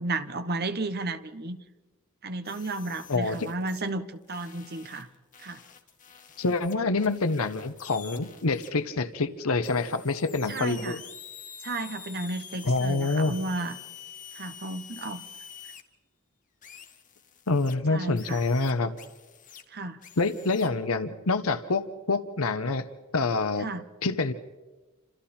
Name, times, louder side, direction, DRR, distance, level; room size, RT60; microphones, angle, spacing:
voice 1, 0.0-1.6 2.2-5.1 5.4-5.6 10.5-11.0 11.6-13.8 14.3-15.2 17.9-18.4 19.7-20.0 23.6-23.8, right 2 dB, 50° right, 10 dB, 1.3 m, -33 dB
sound 1, 2.4-3.9 4.3-8.7 9.6-15.8 16.6-17.7 18.2-19.6 20.0-20.7, left 8 dB, 40° left, 1.7 m, -47 dB
voice 2, 3.1-3.5 6.4-11.0 12.6-13.3 17.5-18.9 20.2-22.9 23.1-23.7 24.0-24.3, left 3 dB, 80° left, 11 dB, 1.0 m, -26 dB
29.0 x 26.5 x 4.4 m, 1.2 s
head